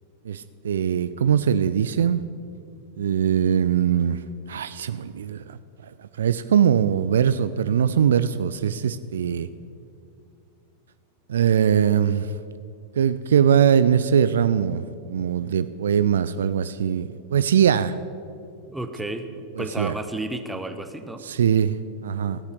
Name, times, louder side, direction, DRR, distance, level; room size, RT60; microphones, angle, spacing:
voice 1, 0.3-2.2 3.0-4.2 4.5-5.6 6.0-9.5 11.3-12.3 13.0-18.0 19.6-19.9 21.2-22.4, right 8 dB, 65° right, 14 dB, 0.3 m, -21 dB
voice 2, 18.7-21.2, right 2 dB, 5° right, 8 dB, 0.9 m, -32 dB
14.5 x 8.1 x 6.5 m, 2.4 s
figure-of-eight pair, 90°, 0 cm